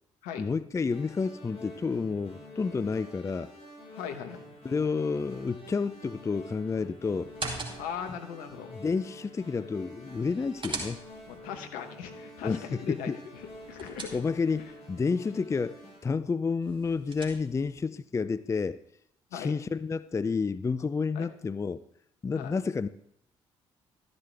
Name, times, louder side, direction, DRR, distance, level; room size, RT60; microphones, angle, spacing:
voice 1, 0.4-3.5 4.6-7.3 8.7-11.0 12.4-13.2 14.1-18.8 19.3-21.8 22.2-22.9, left 5 dB, 20° left, 0.4 m, -30 dB
sound 1, 0.9-16.0, equal, 50° left, 5.0 m, -48 dB
voice 2, 3.9-4.4 7.7-8.7 11.3-13.4 13.7-14.2 14.6-14.7 19.3-19.6 21.1-21.3 22.3-22.6, left 8 dB, 70° left, 1.1 m, -39 dB
sound 2, 7.2-8.1 10.1-11.4 13.4-14.6 16.6-17.7, right 3 dB, 35° right, 2.5 m, -41 dB
13.0 x 10.5 x 3.4 m
hypercardioid pair, 45°, 14 cm